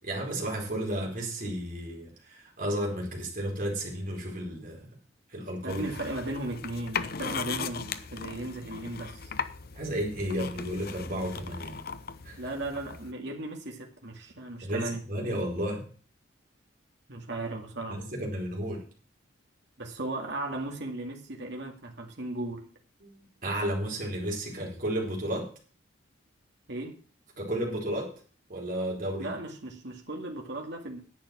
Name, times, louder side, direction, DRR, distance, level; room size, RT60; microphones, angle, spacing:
voice 1, 0.0-4.9 5.3-5.8 9.7-11.8 12.2-12.4 14.6-15.9 17.9-18.9 23.0-25.5 27.4-28.1 28.5-29.3, right 1 dB, 45° right, -1 dB, 4.3 m, -33 dB
voice 2, 5.6-9.3 12.4-15.1 17.1-18.0 19.8-22.7 26.7-27.0 29.2-31.0, right 2 dB, 60° right, 1 dB, 2.1 m, -36 dB
sound 1, 5.7-13.1, left 6 dB, 50° left, 0.7 m, -38 dB
10.5 x 8.8 x 6.1 m, 0.40 s
head